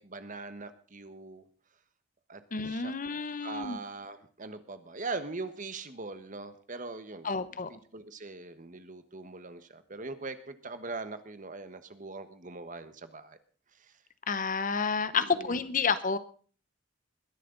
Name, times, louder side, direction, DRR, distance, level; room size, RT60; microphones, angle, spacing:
voice 1, 0.0-1.4 2.3-2.9 3.4-7.3 7.9-13.4 15.1-15.6, right 3 dB, 40° right, 11 dB, 1.3 m, -41 dB
voice 2, 2.5-3.8 7.2-7.7 14.3-16.2, left 5 dB, 45° left, 14 dB, 1.0 m, -30 dB
21.0 x 11.0 x 4.0 m, 0.43 s
head